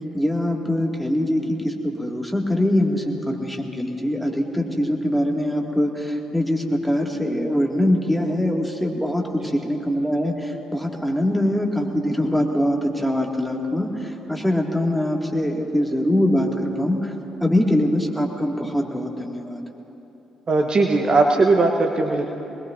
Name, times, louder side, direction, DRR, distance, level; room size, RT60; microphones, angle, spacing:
voice 1, 0.1-17.1 17.4-19.6, left 1 dB, ahead, 0 dB, 2.1 m, -23 dB
voice 2, 20.5-22.3, right 3 dB, 40° right, 3 dB, 1.0 m, -19 dB
22.0 x 20.5 x 2.6 m, 3.0 s
hypercardioid pair, 45°, 2 cm